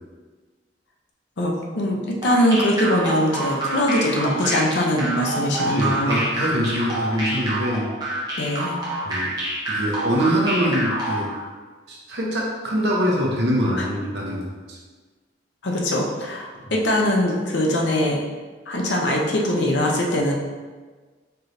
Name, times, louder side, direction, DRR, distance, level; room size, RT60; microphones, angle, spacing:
voice 1, 1.4-6.2 8.4-8.8 13.8-13.9 15.6-18.2 18.7-20.3, left 1 dB, 80° left, 0 dB, 0.7 m, -22 dB
sound 1, 2.2-11.4, right 1 dB, 25° right, 0.8 m, -27 dB
voice 2, 5.6-7.9 9.0-9.3 9.7-11.3 11.9-14.8 16.6-16.7, equal, 70° right, -3 dB, 0.9 m, -24 dB
4.5 x 3.2 x 2.7 m, 1.4 s
head